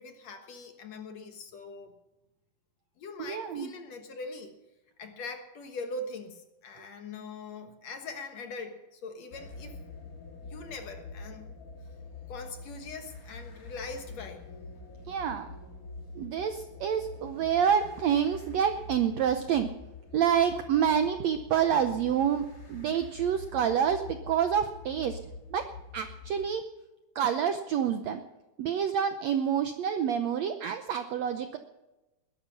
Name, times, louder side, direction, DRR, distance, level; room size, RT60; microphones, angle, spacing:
voice 1, 0.0-1.9 3.0-4.5 5.0-9.8 10.4-11.4 12.3-14.4, left 3 dB, 60° left, 6 dB, 2.2 m, -42 dB
voice 2, 3.2-3.7 15.1-15.5 16.1-19.7 20.1-25.2 25.5-25.7 25.9-26.7 27.1-28.2 28.6-31.6, right 8 dB, 75° right, 8 dB, 1.6 m, -28 dB
sound 1, 9.3-26.5, left 3 dB, 25° left, 2.6 m, -45 dB
20.5 x 11.0 x 5.8 m, 1.0 s
omnidirectional pair, 4.0 m